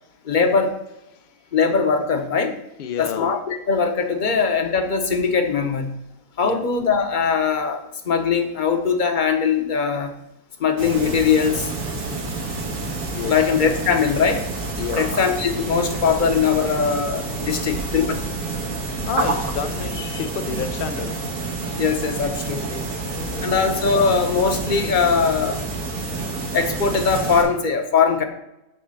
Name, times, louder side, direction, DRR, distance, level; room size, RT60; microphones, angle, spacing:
voice 1, 0.2-0.8 1.5-2.6 3.0-5.9 6.4-10.1 10.6-11.7 13.3-14.4 15.0-18.3 21.8-22.9 23.4-25.6 26.5-28.2, left 5 dB, 40° left, 6 dB, 0.8 m, -21 dB
voice 2, 1.1-1.5 2.8-3.3 6.4-6.7 13.1-13.5 14.7-15.2 17.4-17.6 19.1-21.2 23.0-23.7, left 7 dB, 80° left, 9 dB, 0.4 m, -30 dB
sound 1, 10.8-27.4, right 3 dB, 85° right, 1.7 m, -28 dB
9.5 x 3.3 x 6.4 m, 0.90 s
omnidirectional pair, 1.5 m